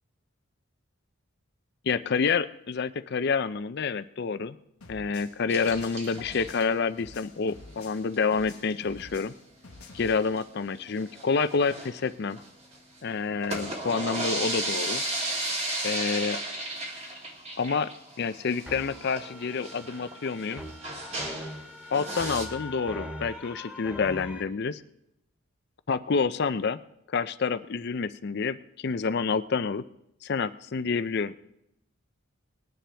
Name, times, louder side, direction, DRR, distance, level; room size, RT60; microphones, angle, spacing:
voice 1, 1.8-4.6 4.9-9.3 9.9-12.4 13.0-15.0 15.8-16.4 17.6-17.9 18.2-20.6 21.9-24.8 25.9-26.8 27.1-29.8 30.2-31.3, left 5 dB, 50° left, 13 dB, 0.5 m, -28 dB
sound 1, 4.8-8.1 8.3-10.1, left 3 dB, 85° left, 1.1 m, -48 dB
sound 2, 5.5-6.6 7.9-8.2 8.4-8.5 8.7-8.8 9.1-9.2 9.8-10.4 10.9-12.8 13.3-21.6 21.9-22.5, right 2 dB, 30° right, 1.8 m, -35 dB
sound 3, 18.7-24.4, left 1 dB, 5° right, 1.8 m, -41 dB
19.5 x 10.0 x 3.4 m, 0.82 s
head